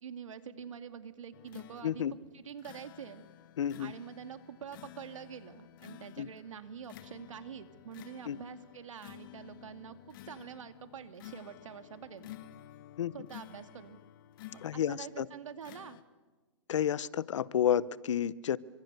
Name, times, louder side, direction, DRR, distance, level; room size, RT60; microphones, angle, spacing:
voice 1, 0.0-3.2 3.8-12.3 13.1-14.0 14.5-16.0, right 7 dB, 85° right, 2.5 m, -46 dB
sound 1, 1.3-15.1 15.6-16.0, left 14 dB, 40° left, 1.4 m, -52 dB
voice 2, 1.8-2.1 3.6-3.9 6.2-6.3 8.3-8.4 13.0-13.1 14.6-15.3 16.7-18.6, left 9 dB, 70° left, 1.0 m, -30 dB
30.0 x 25.0 x 6.9 m
hypercardioid pair, 155°, 16 cm